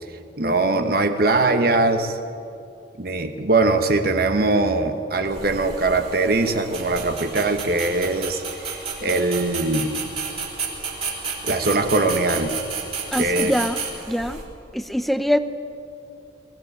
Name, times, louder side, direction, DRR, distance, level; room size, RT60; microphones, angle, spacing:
voice 1, 0.4-2.2 3.0-10.0 11.4-12.5 13.2-13.5, right 2 dB, 55° right, 6 dB, 1.2 m, -21 dB
sound 1, 5.3-14.5, right 5 dB, 30° right, 3.6 m, -32 dB
voice 2, 13.1-14.4 14.7-15.4, equal, ahead, 10 dB, 0.6 m, -23 dB
22.5 x 15.5 x 9.1 m, 2.6 s
head